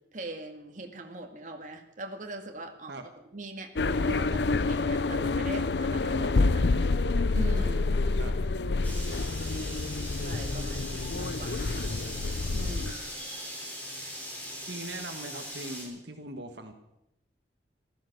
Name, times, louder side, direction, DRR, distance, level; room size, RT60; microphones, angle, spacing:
voice 1, 0.1-6.8 7.3-7.9 10.2-11.9 12.5-13.1, right 2 dB, 45° right, 3 dB, 2.0 m, -42 dB
sound 1, 3.8-12.9, left 3 dB, 75° left, 0.6 m, -28 dB
sound 2, 8.8-15.8, equal, 10° left, 4.4 m, -40 dB
voice 2, 14.7-16.7, right 2 dB, 80° right, 6 dB, 1.5 m, -40 dB
15.5 x 14.0 x 6.7 m, 0.84 s
head